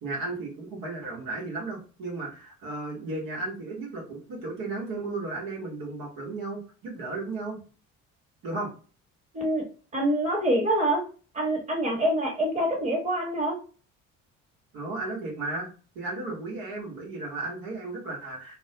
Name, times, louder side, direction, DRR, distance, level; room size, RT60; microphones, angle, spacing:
voice 1, 0.0-7.6 8.4-8.7 14.7-15.7 15.9-18.5, right 3 dB, 60° right, -2 dB, 1.1 m, -34 dB
voice 2, 9.9-11.1 11.3-13.6, right 1 dB, 20° right, -1 dB, 1.2 m, -25 dB
2.4 x 2.1 x 2.7 m, 0.37 s
hypercardioid pair, 55°, 39 cm